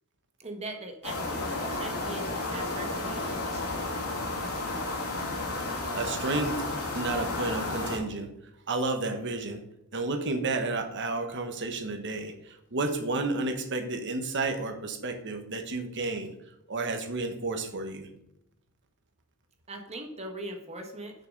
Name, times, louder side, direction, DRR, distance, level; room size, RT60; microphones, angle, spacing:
voice 1, 0.4-3.9 19.7-21.1, right 2 dB, 30° right, 3 dB, 1.4 m, -41 dB
sound 1, 1.0-8.0, left 2 dB, 80° left, 2.8 m, -32 dB
voice 2, 5.9-6.7 6.9-8.3 8.7-9.6 9.9-16.3 16.7-18.1, right 3 dB, 55° right, 6 dB, 1.2 m, -31 dB
6.9 x 5.9 x 6.4 m, 0.82 s
head